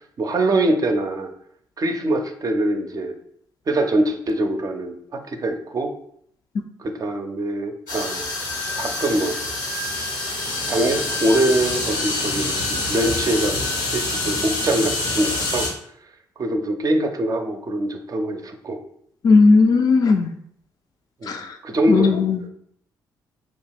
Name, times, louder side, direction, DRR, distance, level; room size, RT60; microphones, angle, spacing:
voice 1, 0.2-1.3 1.8-3.1 3.7-5.9 6.8-8.3 8.8-9.4 10.7-13.6 13.9-15.7 16.4-18.8 21.2-21.4 21.6-22.1 22.4-22.5, right 1 dB, 40° right, 6 dB, 0.5 m, -23 dB
sound 1, 7.9-15.7, left 2 dB, 80° left, 0.7 m, -26 dB
voice 2, 19.2-20.3 21.3-21.4 21.9-22.4, left 4 dB, 40° left, 5 dB, 0.3 m, -15 dB
2.9 x 2.2 x 3.4 m, 0.68 s
hypercardioid pair, 40°, 10 cm